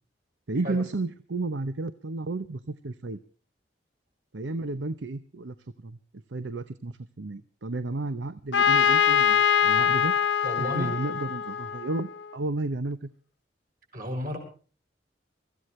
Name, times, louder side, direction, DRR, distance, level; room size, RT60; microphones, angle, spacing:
voice 1, 0.5-3.2 4.3-5.5 5.8-6.0 6.3-10.1 10.6-13.1, right 2 dB, 90° right, 13 dB, 0.8 m, -32 dB
Trumpet, 8.5-12.3, left 8 dB, 85° left, 0.9 m, -23 dB
voice 2, 10.4-10.9 13.9-14.4, equal, 50° right, 3 dB, 5.9 m, -32 dB
23.5 x 15.0 x 3.2 m, 0.39 s
head